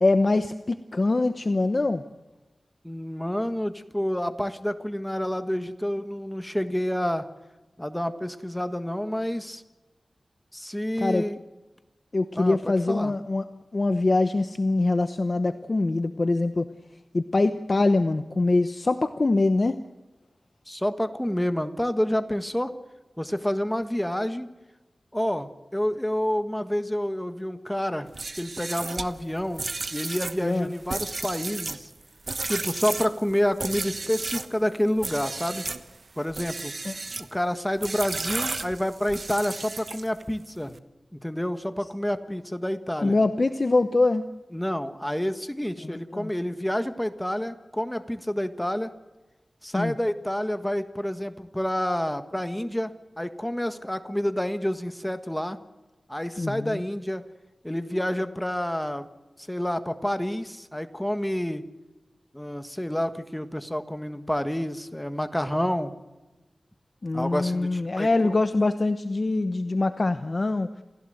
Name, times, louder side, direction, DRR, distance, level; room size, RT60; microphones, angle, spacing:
voice 1, 0.0-2.0 11.0-11.2 12.1-13.5 13.7-16.7 17.1-19.7 30.4-30.7 36.8-36.9 43.0-44.3 45.8-46.3 49.7-49.9 56.4-56.8 67.0-70.7, left 2 dB, 40° left, 9 dB, 1.0 m, -24 dB
voice 2, 2.8-7.3 7.8-9.6 10.5-11.4 12.4-13.1 20.7-22.8 23.2-24.5 25.1-28.1 28.4-29.6 29.9-31.9 32.4-35.7 36.2-36.7 37.3-40.7 41.1-43.2 44.5-48.9 49.6-52.9 53.2-55.6 56.1-57.2 57.6-59.1 59.5-61.7 62.3-65.9 67.1-68.3, equal, 5° left, 9 dB, 1.5 m, -28 dB
sound 1, 28.1-34.5 35.0-35.8 36.3-37.3 37.8-40.2, right 3 dB, 50° right, 1.2 m, -33 dB
28.0 x 15.5 x 7.9 m, 1.1 s
wide cardioid pair, 105°, 0 cm